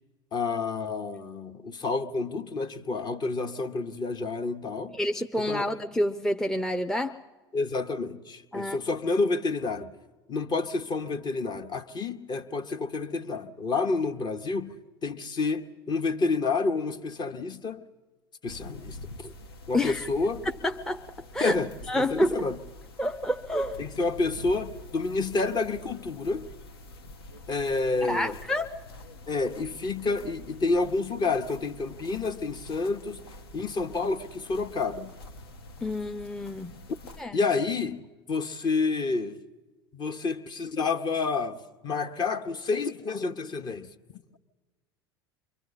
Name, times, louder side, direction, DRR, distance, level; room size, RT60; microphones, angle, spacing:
voice 1, 0.3-5.0 5.4-5.7 7.5-9.9 10.3-17.8 18.4-19.3 19.7-20.4 21.4-22.6 23.8-26.5 27.5-28.4 29.3-33.2 33.5-35.1 37.3-39.4 39.9-44.2, left 3 dB, 35° left, 1.1 m, -29 dB
voice 2, 4.9-7.2 8.5-8.8 19.7-20.1 20.6-21.1 21.3-21.6 21.9-22.4 23.0-23.8 28.1-28.8 35.8-36.7 37.2-37.4, left 1 dB, 5° left, 0.6 m, -28 dB
sound 1, 18.5-37.2, left 1 dB, 75° left, 1.0 m, -46 dB
28.0 x 24.0 x 4.1 m
figure-of-eight pair, 75°, 13 cm